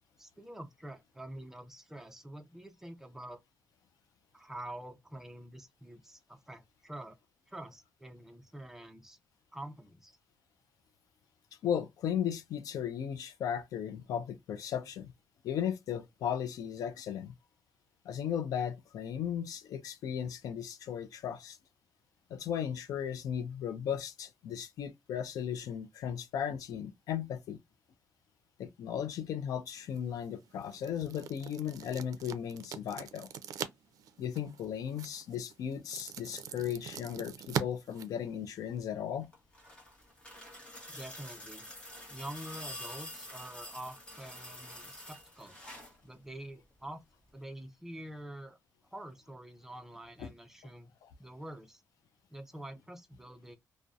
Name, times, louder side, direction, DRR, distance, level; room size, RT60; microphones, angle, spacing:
voice 1, 0.2-3.4 4.3-7.2 7.5-9.2 9.5-10.1 40.9-41.7 42.1-45.6 46.0-47.0 47.3-48.6 48.9-50.9 51.2-51.8 52.3-53.6, right 1 dB, 5° right, 0.4 m, -46 dB
voice 2, 11.6-15.1 15.4-17.3 18.0-21.6 22.3-27.6 28.6-33.3 34.2-39.3 50.2-50.3 51.0-51.1, left 9 dB, 75° left, 0.4 m, -36 dB
sound 1, 29.8-38.8, right 8 dB, 70° right, 0.4 m, -43 dB
sound 2, 39.2-46.0 47.3-47.4, left 1 dB, 20° left, 0.8 m, -47 dB
2.6 x 2.0 x 2.3 m
cardioid pair, 160°, 6 cm